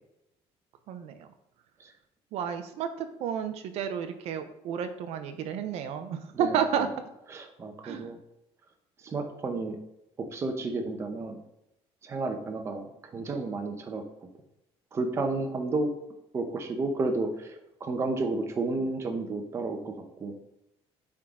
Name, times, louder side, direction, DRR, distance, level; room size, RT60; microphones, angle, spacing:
voice 1, 0.9-1.3 2.3-6.9 7.8-8.0, right 8 dB, 70° right, 8 dB, 0.6 m, -31 dB
voice 2, 6.3-6.9 7.3-8.2 9.0-9.8 10.2-11.4 12.0-14.0 14.9-15.9 16.3-20.4, right 3 dB, 25° right, 5 dB, 0.7 m, -32 dB
8.7 x 3.7 x 3.6 m, 0.85 s
cardioid pair, 170°, 11 cm